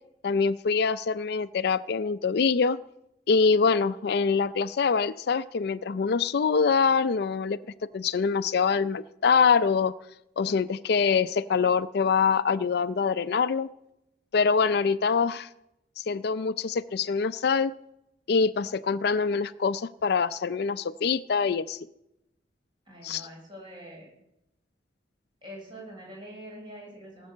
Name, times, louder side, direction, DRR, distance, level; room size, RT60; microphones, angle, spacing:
voice 1, 0.2-2.8 3.3-7.6 7.9-9.9 10.4-13.7 14.3-15.5 16.0-17.7 18.3-21.8 23.0-23.3, left 5 dB, 60° left, 15 dB, 0.4 m, -24 dB
voice 2, 22.9-24.1 25.4-27.3, equal, 25° right, -2 dB, 6.3 m, -44 dB
18.5 x 7.5 x 7.2 m, 0.86 s
head